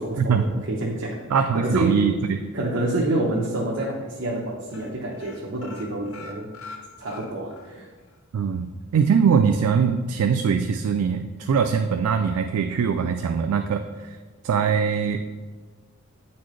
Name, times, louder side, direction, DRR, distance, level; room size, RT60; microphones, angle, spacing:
voice 1, 0.0-1.3 1.5-2.1 2.5-6.5 7.0-7.9, right 1 dB, 60° right, -4 dB, 0.8 m, -27 dB
voice 2, 1.3-2.4 8.3-14.2 14.4-15.2, right 6 dB, 90° right, 6 dB, 0.3 m, -22 dB
sound 1, 2.9-3.5 3.8-4.0 4.2-4.4 4.7-7.7 8.1-8.2 8.5-8.6, left 4 dB, 70° left, 0.7 m, -43 dB
8.2 x 4.3 x 3.1 m, 1.4 s
head